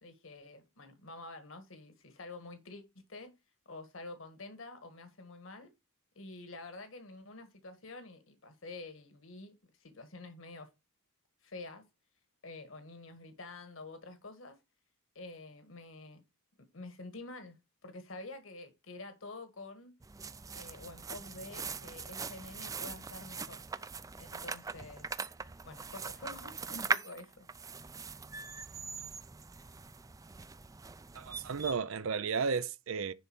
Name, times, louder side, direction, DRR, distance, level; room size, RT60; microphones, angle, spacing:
voice 1, 0.0-2.8 3.1-3.4 3.6-5.7 6.1-10.7 11.4-11.8 12.4-14.6 15.1-16.2 16.7-20.0 20.5-23.6 24.2-25.2 25.6-27.5, left 2 dB, 70° left, 1.6 m, -48 dB
sound 1, 20.0-31.7, right 4 dB, 15° right, 0.4 m, -41 dB
voice 2, 31.1-33.1, right 5 dB, 75° right, 0.5 m, -33 dB
10.5 x 4.0 x 6.0 m
head